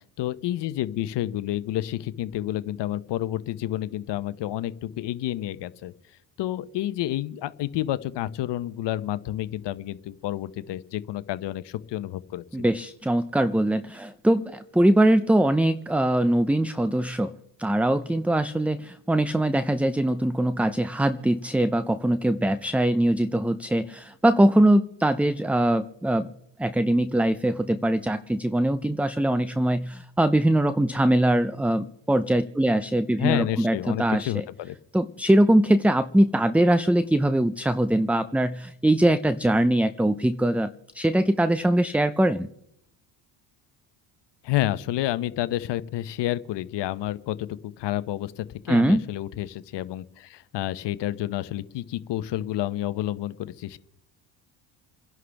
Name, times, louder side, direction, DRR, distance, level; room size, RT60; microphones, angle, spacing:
voice 1, 0.2-5.9 6.4-12.4 33.2-34.8 44.4-53.8, left 14 dB, 55° left, 14 dB, 1.0 m, -29 dB
voice 2, 12.5-17.3 17.6-26.3 26.6-34.3 34.9-42.5 48.7-49.0, right 1 dB, 5° right, 13 dB, 0.5 m, -22 dB
29.0 x 11.0 x 3.5 m, 0.79 s
hypercardioid pair, 70°, 49 cm